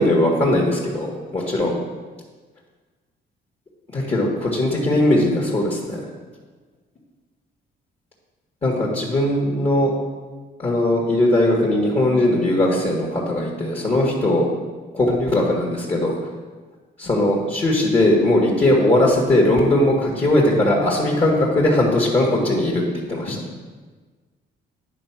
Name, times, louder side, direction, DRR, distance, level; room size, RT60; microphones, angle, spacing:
voice 1, 0.0-1.7 3.9-6.0 8.6-9.9 10.6-14.5 14.9-16.2 17.0-22.8 23.1-23.4, left 1 dB, 30° left, -3 dB, 1.7 m, -19 dB
9.9 x 3.9 x 5.9 m, 1.4 s
cardioid pair, 90°, 20 cm